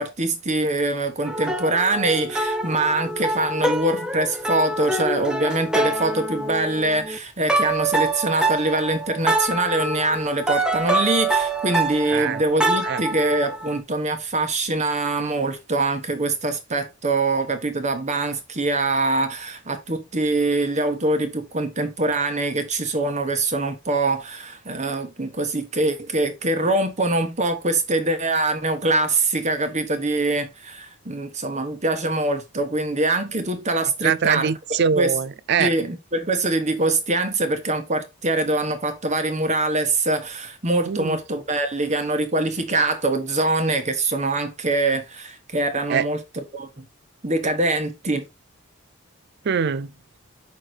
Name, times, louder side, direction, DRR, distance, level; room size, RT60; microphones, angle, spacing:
voice 1, 0.0-34.5 34.9-35.1 35.6-46.8 47.2-48.2, right 2 dB, 35° right, 1.3 m, -24 dB
sound 1, 1.2-7.2 7.5-13.8, right 2 dB, 5° right, 0.9 m, -25 dB
voice 2, 12.1-12.4 12.8-13.0 34.0-35.7 40.9-41.2 45.9-46.1 49.4-49.9, right 6 dB, 55° right, 0.5 m, -23 dB
5.9 x 4.6 x 4.7 m
head